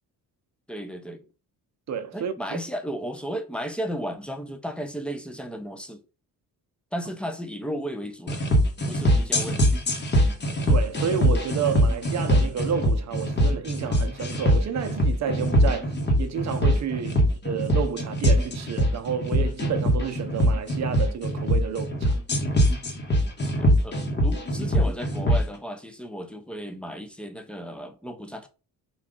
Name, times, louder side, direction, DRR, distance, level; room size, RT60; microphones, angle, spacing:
voice 1, 0.7-1.2 2.1-6.0 6.9-8.4 8.8-9.6 17.1-17.3 23.6-28.5, equal, 5° left, 0.4 m, -34 dB
voice 2, 1.9-2.3 10.7-22.2, right 7 dB, 50° right, 0.6 m, -30 dB
sound 1, 8.3-25.4, equal, 30° left, 1.0 m, -22 dB
3.8 x 2.3 x 3.7 m
cardioid pair, 125°, 36 cm